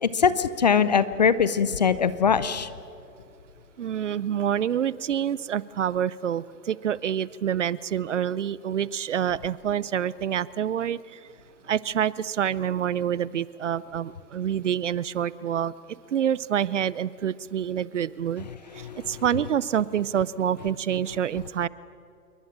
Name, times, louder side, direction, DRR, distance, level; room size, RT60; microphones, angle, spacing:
voice 1, 0.0-2.7 18.8-19.0, left 6 dB, 25° left, 15 dB, 0.6 m, -22 dB
voice 2, 3.8-11.2 11.6-15.7 16.1-18.5 18.7-21.7, right 9 dB, 50° right, 20 dB, 0.7 m, -27 dB
28.0 x 22.5 x 8.8 m, 2.4 s
hypercardioid pair, 150°, 48 cm